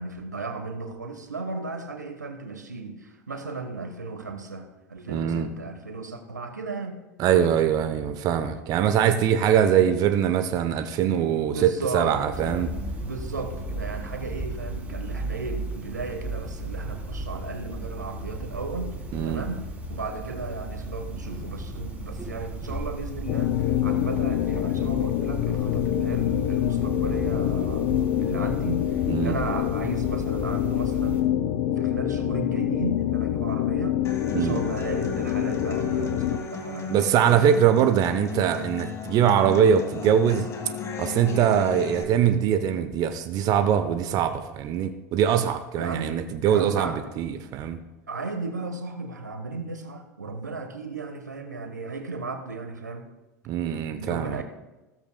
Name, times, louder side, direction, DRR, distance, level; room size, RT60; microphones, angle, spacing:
voice 1, 0.0-7.0 11.5-12.2 13.0-18.9 19.2-19.6 19.9-37.3 45.8-47.0 48.1-53.1 54.0-54.4, right 3 dB, 90° right, 5 dB, 1.2 m, -35 dB
voice 2, 5.1-5.5 7.2-12.7 19.1-19.5 29.1-29.4 34.3-34.6 36.9-40.5 41.0-47.8 53.5-54.4, right 9 dB, 45° right, 9 dB, 0.8 m, -22 dB
sound 1, 12.3-31.2, right 1 dB, 15° right, 3.3 m, -35 dB
sound 2, 23.3-36.4, left 12 dB, 50° left, 0.6 m, -26 dB
Human voice / Acoustic guitar, 34.0-42.0, left 4 dB, 30° left, 1.6 m, -35 dB
15.5 x 13.5 x 2.2 m, 1.1 s
figure-of-eight pair, 80°, 9 cm